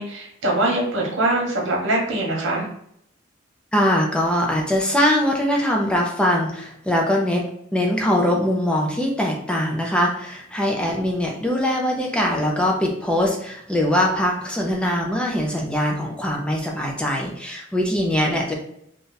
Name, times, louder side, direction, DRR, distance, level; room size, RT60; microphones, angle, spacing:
voice 1, 0.0-2.7 18.2-18.4, right 1 dB, 80° right, -1 dB, 1.1 m, -23 dB
voice 2, 3.7-7.4 7.7-18.5, left 1 dB, 5° left, -1 dB, 0.5 m, -22 dB
2.6 x 2.3 x 3.9 m, 0.72 s
head